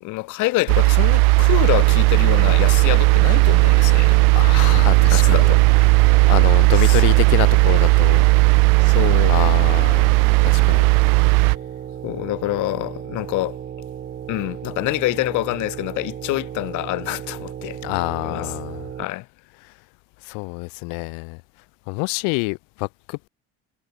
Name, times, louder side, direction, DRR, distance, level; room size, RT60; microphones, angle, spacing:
voice 1, 0.0-4.2 5.1-5.6 6.1-6.3 6.7-7.2 8.8-9.4 12.0-13.6 14.3-17.8 18.2-18.5 19.0-19.3, left 21 dB, 65° left, 1.2 m, -26 dB
sound 1, 0.7-11.6, right 31 dB, 75° right, 0.6 m, -15 dB
sound 2, 1.8-19.0, right 9 dB, 30° right, 1.2 m, -35 dB
voice 2, 4.3-5.5 6.3-8.3 9.3-10.1 10.4-10.9 17.8-18.9 20.2-21.4 21.9-23.3, left 34 dB, 85° left, 0.8 m, -26 dB
cardioid pair, 135°, 33 cm